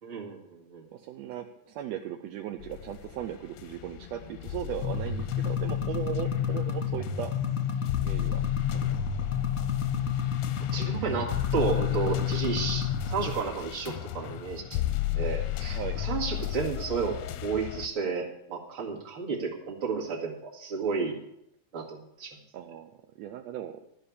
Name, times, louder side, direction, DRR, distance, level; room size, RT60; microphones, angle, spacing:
voice 1, 0.0-0.8 10.7-14.8 15.2-21.2 21.7-22.4, right 5 dB, 45° right, -1 dB, 2.5 m, -32 dB
voice 2, 0.9-7.3 8.0-8.4 8.7-8.9 15.7-16.0 22.5-22.9 23.2-23.8, right 11 dB, 75° right, 5 dB, 1.6 m, -37 dB
sound 1, 2.6-17.9, left 14 dB, 75° left, 1.6 m, -35 dB
sound 2, 4.8-13.3, left 8 dB, 50° left, 1.2 m, -30 dB
13.0 x 5.7 x 8.4 m, 0.79 s
omnidirectional pair, 3.6 m